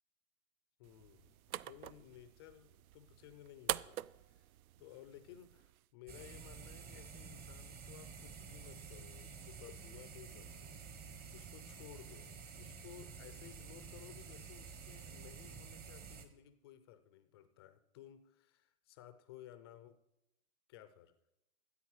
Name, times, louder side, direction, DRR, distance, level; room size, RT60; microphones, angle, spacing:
voice 1, 0.8-1.4 1.7-4.5 4.8-10.8 11.0-20.0 20.7-21.1, left 11 dB, 20° left, 11 dB, 0.3 m, -57 dB
sound 1, 0.8-5.9, right 13 dB, 75° right, 0.5 m, -45 dB
sound 2, 6.1-16.2, right 5 dB, 20° right, 1.0 m, -51 dB
13.5 x 8.5 x 4.7 m, 0.87 s
hypercardioid pair, 130°, 43 cm